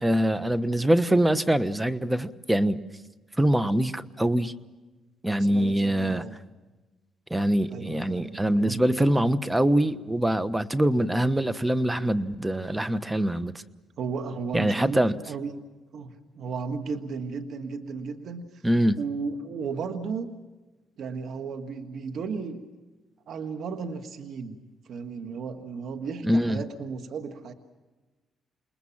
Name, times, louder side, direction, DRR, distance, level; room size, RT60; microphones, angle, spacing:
voice 1, 0.0-2.8 3.4-4.5 5.2-6.2 7.3-13.6 14.5-15.2 18.6-19.0 26.2-26.6, right 1 dB, 10° right, 13 dB, 1.1 m, -24 dB
voice 2, 5.4-6.4 7.7-9.3 14.0-15.6 15.9-18.6 19.0-20.3 21.0-22.6 23.3-24.6 24.8-27.5, right 5 dB, 65° right, 7 dB, 1.7 m, -34 dB
28.5 x 20.5 x 7.4 m, 1.2 s
cardioid pair, 90°, 0 cm